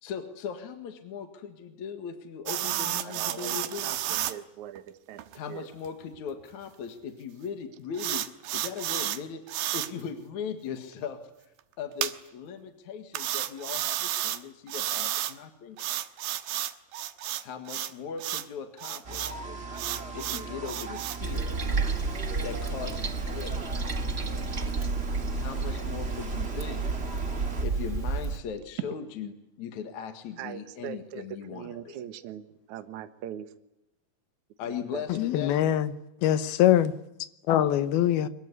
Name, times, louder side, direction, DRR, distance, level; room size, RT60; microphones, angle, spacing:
voice 1, 0.0-4.0 5.3-8.3 8.5-9.4 9.7-11.5 11.8-15.9 17.4-19.4 20.1-21.5 22.4-23.7 25.2-26.9 27.6-32.0 34.6-35.6, left 7 dB, 55° left, 3.0 m, -39 dB
sound 1, 2.5-4.3 4.8-4.9 5.2-5.4 5.9-6.0 7.9-9.2 9.5-9.9 12.0-12.1 13.1-14.4 14.7-15.3 15.8-17.9 18.2-18.5 18.8-19.3 19.7-21.2, right 12 dB, 80° right, 3.0 m, -31 dB
voice 2, 3.0-5.2 5.5-5.7 30.4-33.5 34.7-35.3, right 10 dB, 60° right, 2.4 m, -41 dB
sound 2, 19.0-27.7, right 4 dB, 25° right, 1.7 m, -39 dB
Toilet flush, 21.2-28.4, right 4 dB, 40° right, 1.1 m, -31 dB
voice 3, 35.1-35.9 36.2-36.9 37.5-38.3, left 11 dB, 90° left, 3.1 m, -23 dB
25.0 x 22.0 x 9.7 m
omnidirectional pair, 4.3 m